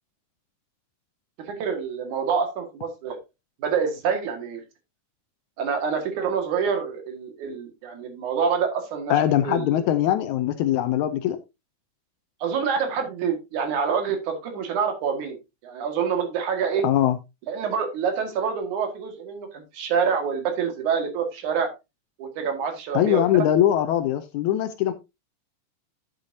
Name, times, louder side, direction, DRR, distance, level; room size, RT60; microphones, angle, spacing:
voice 1, 1.4-3.2 3.6-4.6 5.6-9.1 9.4-9.8 12.4-15.4 15.6-16.8 17.5-21.7 22.2-23.4, right 6 dB, 65° right, 3.2 m, -26 dB
voice 2, 9.1-11.4 16.8-17.2 22.9-24.9, left 11 dB, 75° left, 1.8 m, -21 dB
10.5 x 8.1 x 2.7 m
omnidirectional pair, 3.8 m